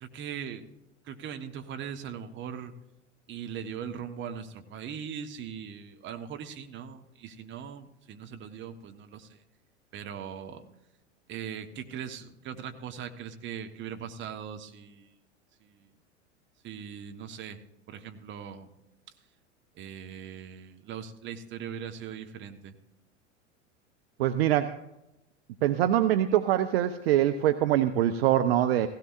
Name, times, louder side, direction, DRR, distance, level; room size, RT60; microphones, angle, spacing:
voice 1, 0.0-0.7 1.1-2.7 3.3-9.4 9.9-10.6 11.3-15.1 15.6-15.9 16.6-17.6 17.9-18.7 19.8-22.7, right 8 dB, 30° right, 7 dB, 1.2 m, -40 dB
voice 2, 24.2-24.8 25.6-28.9, right 12 dB, 50° right, 10 dB, 0.7 m, -24 dB
16.5 x 16.5 x 2.6 m, 0.92 s
figure-of-eight pair, 90°, 39 cm